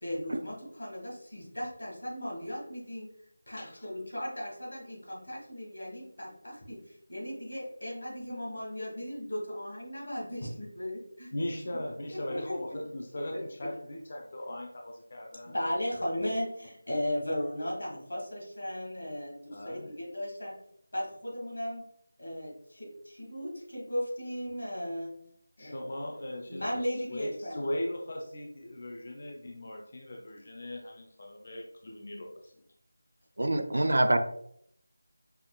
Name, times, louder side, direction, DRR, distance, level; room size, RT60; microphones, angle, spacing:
voice 1, 0.0-3.1 3.5-11.3 12.1-12.5 13.6-13.7 15.4-20.5 20.9-21.8 22.2-25.1 25.6-25.9 26.5-27.6 33.7-33.9, equal, 75° left, -4 dB, 1.5 m, -36 dB
voice 2, 11.3-15.5 19.5-19.9 25.6-26.8 27.1-32.5, left 1 dB, 40° left, 1 dB, 0.4 m, -38 dB
voice 3, 33.4-34.2, right 1 dB, 70° right, 8 dB, 0.4 m, -25 dB
5.6 x 2.2 x 2.2 m, 0.69 s
figure-of-eight pair, 175°, 0 cm